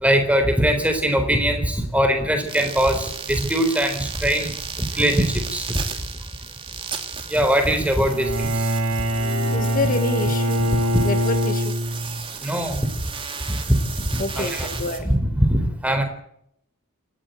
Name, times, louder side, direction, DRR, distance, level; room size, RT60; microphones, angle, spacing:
voice 1, 0.0-4.5 5.0-5.7 7.3-8.5 10.9-11.1 12.4-12.9 13.5-13.8 14.1-14.7 15.0-16.0, equal, 5° right, 7 dB, 4.0 m, -21 dB
sound 1, 2.5-15.0, right 6 dB, 25° right, 3.2 m, -35 dB
Bowed string instrument, 8.1-12.2, equal, 85° right, 5.2 m, -23 dB
voice 2, 9.5-10.6 11.0-11.7 14.2-15.1, left 2 dB, 40° left, 7 dB, 1.9 m, -27 dB
27.5 x 13.5 x 8.0 m, 0.73 s
head